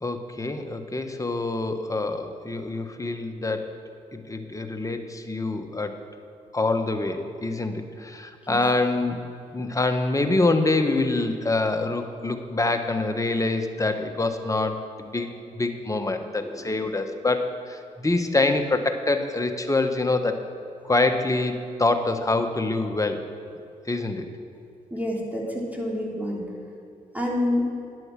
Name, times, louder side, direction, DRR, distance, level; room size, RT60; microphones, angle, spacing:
voice 1, 0.0-3.7 4.1-6.0 6.5-9.2 9.5-15.3 15.5-20.4 20.8-23.2 23.9-24.3, left 2 dB, 20° left, 6 dB, 1.4 m, -25 dB
voice 2, 24.9-26.4 27.1-27.7, left 1 dB, 10° right, -3 dB, 3.0 m, -27 dB
11.0 x 7.8 x 7.6 m, 2.6 s
supercardioid pair, 50°, 16 cm